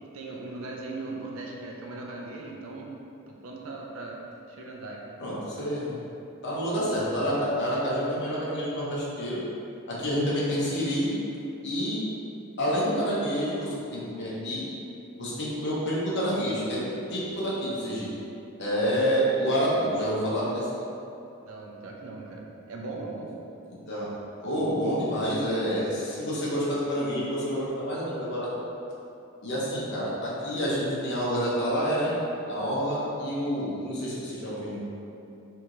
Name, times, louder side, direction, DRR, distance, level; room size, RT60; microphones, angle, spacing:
voice 1, 0.1-2.9 3.3-4.2 4.5-5.2 21.5-23.3, right 2 dB, 75° right, -1 dB, 0.5 m, -39 dB
voice 2, 5.2-5.9 6.4-9.4 9.9-11.1 11.6-12.0 12.6-14.7 15.2-16.8 17.1-18.1 18.6-20.7 23.9-24.1 24.4-28.5 29.4-32.1 32.5-34.8, equal, 55° left, -7 dB, 0.9 m, -28 dB
4.4 x 2.8 x 2.5 m, 2.7 s
head